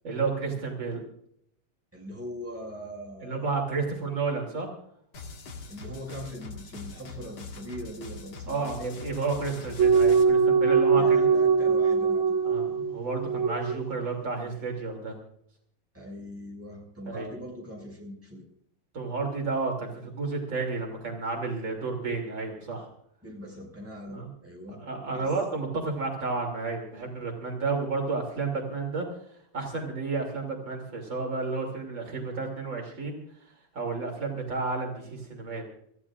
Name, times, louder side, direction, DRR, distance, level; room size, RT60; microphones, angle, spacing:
voice 1, 0.0-1.0 3.2-4.7 8.5-11.3 12.5-15.2 17.1-17.3 18.9-22.9 24.1-24.3 24.8-29.1 29.5-33.2 33.7-35.6, right 4 dB, 65° right, 0 dB, 3.6 m, -31 dB
voice 2, 1.9-3.9 5.7-8.7 9.1-9.2 11.0-12.6 15.9-18.5 23.2-24.8 25.1-25.3, equal, 5° right, -1 dB, 5.7 m, -41 dB
sound 1, 5.1-10.2, left 3 dB, 90° left, 2.7 m, -42 dB
sound 2, 9.8-13.9, right 5 dB, 85° right, 1.8 m, -22 dB
28.0 x 15.0 x 2.5 m, 0.70 s
omnidirectional pair, 2.2 m